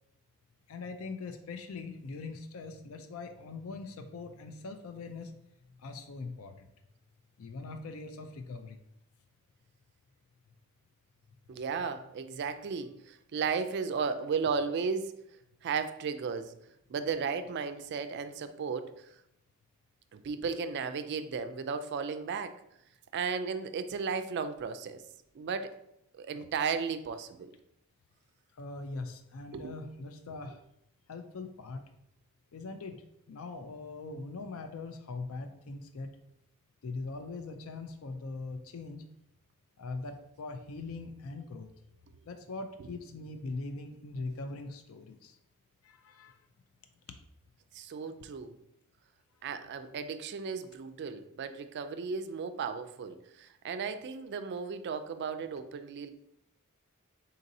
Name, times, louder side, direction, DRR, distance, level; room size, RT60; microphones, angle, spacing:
voice 1, 0.7-5.4 5.8-6.7 7.4-8.8 28.6-30.6 31.1-31.8 32.5-33.0 33.3-36.1 36.8-39.1 39.8-41.7 42.3-45.4 45.8-46.4, left 3 dB, 65° left, 7 dB, 0.4 m, -41 dB
voice 2, 11.5-15.1 15.6-16.5 16.9-19.1 20.1-22.6 23.1-25.0 25.3-25.7 26.1-27.5 29.5-29.7 47.7-48.5 49.4-56.1, right 5 dB, 50° right, 10 dB, 0.3 m, -35 dB
4.0 x 3.9 x 2.6 m, 0.78 s
head